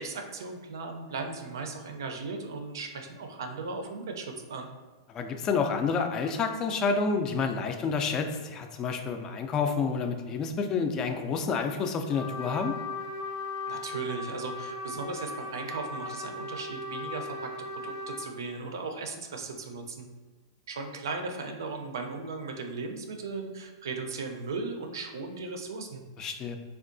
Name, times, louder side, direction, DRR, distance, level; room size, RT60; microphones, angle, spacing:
voice 1, 0.0-4.7 13.7-20.1 20.7-26.0, right 4 dB, 80° right, 4 dB, 0.5 m, -37 dB
voice 2, 5.1-12.8 26.2-26.6, left 5 dB, 25° left, 5 dB, 0.3 m, -29 dB
Trumpet, 12.1-18.3, left 2 dB, 75° left, 0.6 m, -37 dB
3.4 x 2.3 x 2.5 m, 1.4 s
hypercardioid pair, 135°, 2 cm